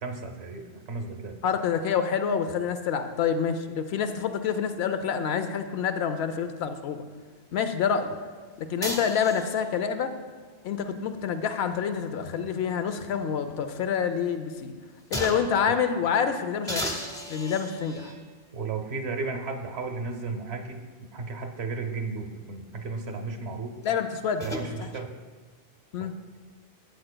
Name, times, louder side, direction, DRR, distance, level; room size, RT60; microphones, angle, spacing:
voice 1, 0.0-1.4 15.7-15.8 18.5-23.7 24.4-25.1 26.0-26.1, right 4 dB, 85° right, 4 dB, 1.1 m, -34 dB
voice 2, 1.4-7.0 7.5-8.1 8.6-10.1 10.6-14.7 15.1-16.9 17.3-18.1 23.8-24.5 24.8-24.9 25.9-26.1, left 7 dB, 85° left, 9 dB, 0.9 m, -27 dB
sound 1, 8.8-9.8 11.5-13.1 13.5-13.6 15.1-15.6 16.7-18.2 19.1-19.2 23.8-24.7, equal, 5° left, 0.6 m, -36 dB
11.5 x 7.7 x 2.2 m, 1.5 s
omnidirectional pair, 1.0 m